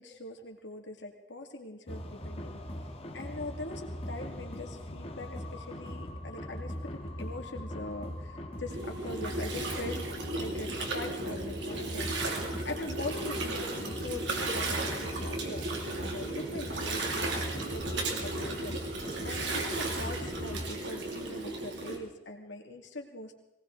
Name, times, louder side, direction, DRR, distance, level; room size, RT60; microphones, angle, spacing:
voice 1, 0.0-2.6 3.1-12.1 12.6-18.8 19.2-23.3, left 2 dB, 90° left, 3 dB, 2.4 m, -42 dB
sound 1, 1.9-20.7, equal, 35° left, 1.5 m, -40 dB
Gurgling, 8.7-22.0, right 2 dB, 90° right, 2.7 m, -35 dB
19.0 x 19.0 x 3.9 m, 0.94 s
head